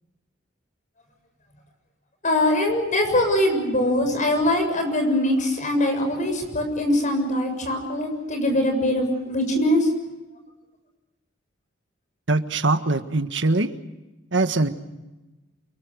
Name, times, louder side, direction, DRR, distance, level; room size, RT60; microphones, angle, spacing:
voice 1, 2.2-9.9, left 1 dB, 40° left, 5 dB, 7.1 m, -22 dB
voice 2, 12.3-13.7 14.3-14.7, right 2 dB, 65° right, 9 dB, 1.6 m, -22 dB
29.5 x 23.0 x 6.4 m, 1.1 s
head